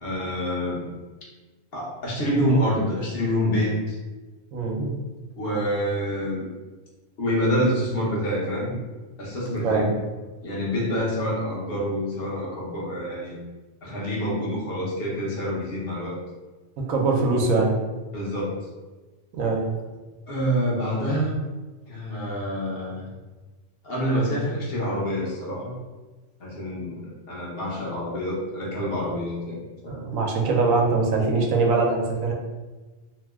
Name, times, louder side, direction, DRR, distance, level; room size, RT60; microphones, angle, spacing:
voice 1, 0.0-0.8 1.7-4.0 5.4-6.5 7.2-8.8 9.2-9.9 10.4-13.4 13.8-16.1 18.1-18.6 20.3-21.4 21.9-23.1 23.8-25.7 26.4-29.6 29.8-30.1, equal, 55° left, -4 dB, 1.0 m, -27 dB
voice 2, 4.5-4.9 9.6-9.9 16.8-17.8 19.3-19.7 29.9-32.3, right 3 dB, 90° right, 0 dB, 1.0 m, -22 dB
2.8 x 2.0 x 3.4 m, 1.2 s
omnidirectional pair, 1.4 m